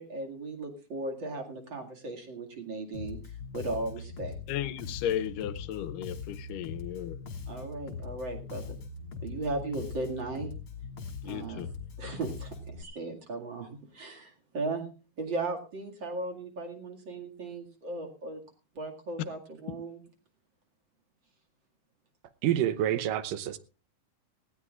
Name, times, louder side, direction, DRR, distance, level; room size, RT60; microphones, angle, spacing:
voice 1, 0.0-4.3 7.5-8.8 9.2-10.5 11.3-11.6 12.0-14.9 15.2-18.4 18.7-20.0, right 2 dB, 40° right, 2.4 m, -37 dB
Bass guitar, 2.9-12.8, left 4 dB, 45° left, 2.5 m, -41 dB
voice 2, 4.5-7.2 11.2-11.7 19.7-19.8, left 11 dB, 80° left, 2.3 m, -34 dB
voice 3, 22.4-23.6, right 11 dB, 85° right, 2.5 m, -27 dB
19.0 x 16.0 x 2.4 m
omnidirectional pair, 3.8 m